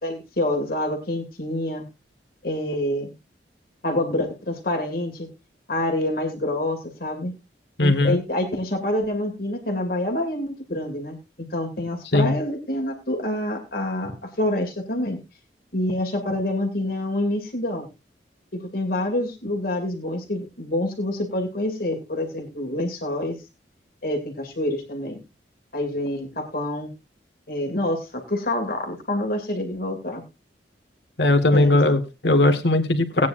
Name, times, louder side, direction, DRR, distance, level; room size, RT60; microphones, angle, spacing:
voice 1, 0.0-1.9 2.4-3.1 3.8-5.3 5.7-7.3 7.8-11.2 11.5-15.2 15.7-17.9 18.5-23.4 24.0-25.2 25.7-26.9 27.5-30.2 31.5-31.8, left 1 dB, 55° left, 3 dB, 2.3 m, -27 dB
voice 2, 7.8-8.2 12.1-12.3 31.2-33.3, left 2 dB, 75° left, 7 dB, 1.6 m, -19 dB
18.5 x 9.5 x 2.5 m, 0.25 s
head